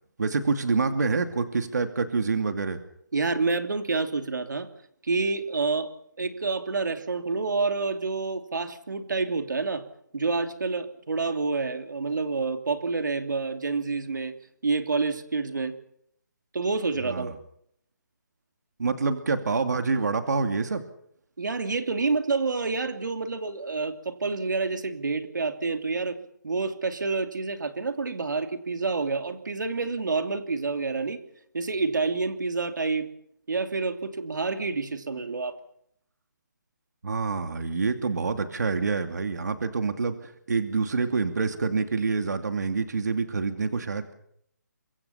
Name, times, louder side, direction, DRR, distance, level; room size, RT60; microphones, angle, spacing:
voice 1, 0.2-2.8 17.0-17.3 18.8-20.8 37.0-44.1, right 4 dB, 65° right, 7 dB, 2.6 m, -27 dB
voice 2, 3.1-4.7 5.0-5.9 6.2-9.8 10.1-14.3 14.6-15.7 16.5-17.3 21.4-26.2 26.4-31.2 31.5-33.1 33.5-35.6, right 4 dB, 85° right, 8 dB, 2.9 m, -28 dB
25.5 x 23.0 x 5.8 m, 0.70 s
hypercardioid pair, 175°, 10 cm